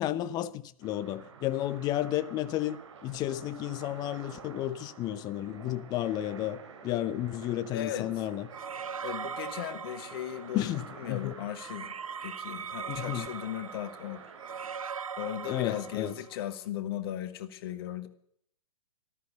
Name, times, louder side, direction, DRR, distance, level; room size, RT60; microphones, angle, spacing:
voice 1, 0.0-8.5 10.5-11.3 12.9-13.3 15.5-16.2, left 13 dB, 20° left, 0.8 m, -32 dB
sound 1, 0.8-14.8, right 6 dB, 55° right, 2.6 m, -50 dB
voice 2, 7.7-8.1 9.0-12.0 12.2-14.2 14.8-18.1, left 11 dB, 40° left, 1.8 m, -37 dB
sound 2, 8.5-10.7 11.6-16.5, right 6 dB, 70° right, 0.7 m, -40 dB
14.0 x 13.5 x 6.8 m
figure-of-eight pair, 115°, 18 cm